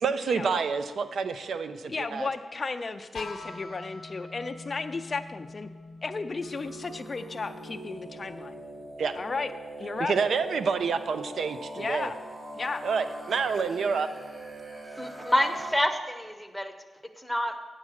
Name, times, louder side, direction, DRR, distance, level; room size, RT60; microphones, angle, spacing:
voice 1, 0.0-2.3 9.0-9.1 10.0-12.1 12.8-14.1, right 5 dB, 75° right, 10 dB, 0.5 m, -28 dB
voice 2, 1.9-5.7 6.0-8.5 9.1-9.5 9.8-10.1 11.8-12.1 12.5-12.8, left 4 dB, 35° left, 7 dB, 0.4 m, -34 dB
sound 1, 3.1-8.9, left 3 dB, 65° left, 0.7 m, -45 dB
sound 2, 6.4-15.7, right 2 dB, 40° right, 2.6 m, -42 dB
voice 3, 15.0-16.7 17.2-17.5, left 1 dB, ahead, 6 dB, 0.8 m, -27 dB
8.3 x 7.4 x 6.3 m, 1.4 s
wide cardioid pair, 130°, 0 cm